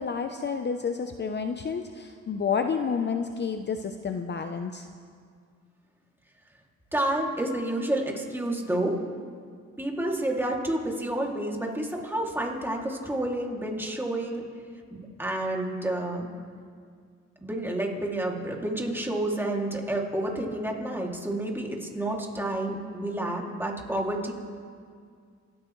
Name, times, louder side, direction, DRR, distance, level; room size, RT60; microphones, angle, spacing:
voice 1, 0.0-4.9, left 6 dB, 35° left, 6 dB, 0.8 m, -30 dB
voice 2, 6.9-9.0 9.8-14.4 14.9-16.3 17.4-24.3, right 1 dB, 5° right, -1 dB, 2.7 m, -29 dB
27.0 x 14.0 x 3.2 m, 2.1 s
cardioid pair, 90°, 30 cm